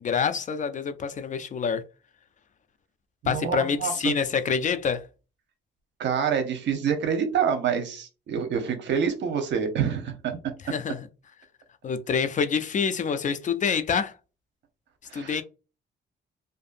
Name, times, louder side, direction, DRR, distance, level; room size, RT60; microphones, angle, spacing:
voice 1, 0.0-1.8 3.3-5.1 10.6-11.1 11.8-14.1 15.1-15.4, left 6 dB, 40° left, 0.4 m, -26 dB
voice 2, 3.2-4.1 6.0-10.4 15.1-15.4, right 7 dB, 65° right, 0.8 m, -27 dB
2.6 x 2.5 x 2.5 m
cardioid pair, 90°, 20 cm